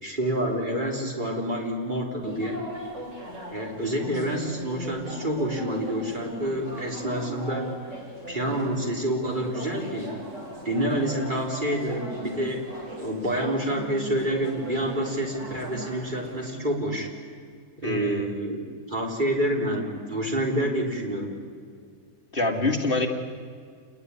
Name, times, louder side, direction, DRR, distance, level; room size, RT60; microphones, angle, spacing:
voice 1, 0.0-2.6 3.5-7.7 8.3-10.2 10.6-17.1 17.8-21.3, right 1 dB, 30° right, 0 dB, 4.4 m, -28 dB
sound 1, 2.2-16.5, equal, 50° right, 6.8 m, -38 dB
voice 2, 17.8-18.3 22.3-23.1, left 2 dB, 35° left, 2 dB, 2.8 m, -25 dB
28.0 x 21.0 x 9.9 m, 2.1 s
omnidirectional pair, 1.6 m